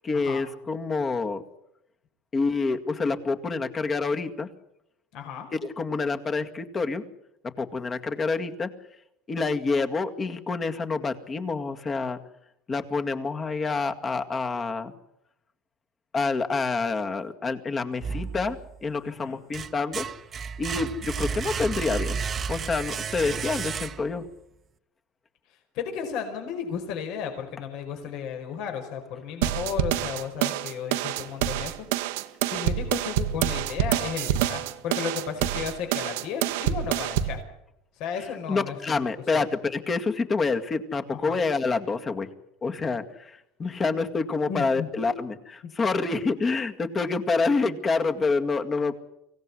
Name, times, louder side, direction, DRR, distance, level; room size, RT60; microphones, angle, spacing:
voice 1, 0.0-1.4 2.3-4.5 5.5-7.0 7.6-8.7 9.3-12.2 12.7-14.9 16.1-20.1 20.6-22.2 22.5-24.2 38.5-42.3 42.6-48.9, left 4 dB, 25° left, 7 dB, 2.1 m, -27 dB
voice 2, 5.1-5.5 19.0-19.4 25.7-31.9 32.4-37.4 38.0-39.0 39.3-39.4 41.2-41.4 44.5-44.9 45.6-45.7, left 7 dB, 60° left, 5 dB, 5.0 m, -34 dB
sound 1, 18.0-18.8 19.3-24.3, right 6 dB, 30° right, 1.2 m, -32 dB
sound 2, 29.4-37.4, right 11 dB, 90° right, 1.4 m, -27 dB
24.5 x 17.5 x 9.9 m, 0.84 s
supercardioid pair, 135°, 0 cm